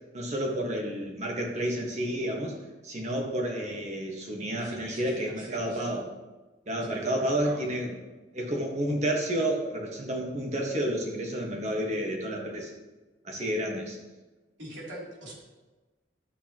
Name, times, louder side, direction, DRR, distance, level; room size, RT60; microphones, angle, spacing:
voice 1, 0.1-2.5 2.8-6.0 6.7-7.9 8.3-12.7 13.2-14.0, right 1 dB, 40° right, 1 dB, 1.5 m, -30 dB
voice 2, 4.6-5.9 6.9-7.7 14.6-15.3, right 1 dB, 90° right, -4 dB, 3.1 m, -43 dB
11.5 x 8.0 x 3.0 m, 1.2 s
head